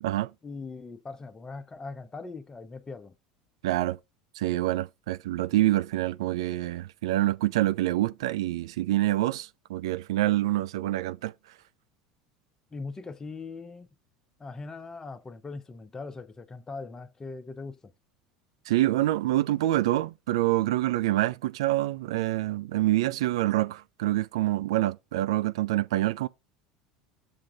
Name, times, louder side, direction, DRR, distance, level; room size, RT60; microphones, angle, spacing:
voice 1, 0.4-3.1 12.7-13.9 14.4-17.9, left 3 dB, 20° left, 0.8 m, -40 dB
voice 2, 3.6-4.0 4.3-11.3 18.7-26.3, right 15 dB, 65° right, 0.4 m, -26 dB
7.1 x 3.7 x 5.1 m
figure-of-eight pair, 70°, 3 cm